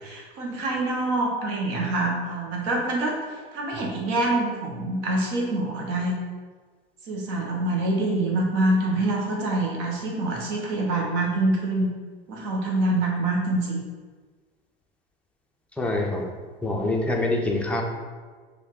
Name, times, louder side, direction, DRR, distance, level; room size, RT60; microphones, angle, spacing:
voice 1, 0.0-3.2 3.5-6.2 7.1-11.9 12.3-13.8, right 2 dB, 50° right, -1 dB, 1.2 m, -25 dB
voice 2, 15.8-16.3 16.6-17.8, left 2 dB, 5° left, 0 dB, 0.6 m, -25 dB
5.0 x 2.7 x 3.9 m, 1.4 s
figure-of-eight pair, 80°, 31 cm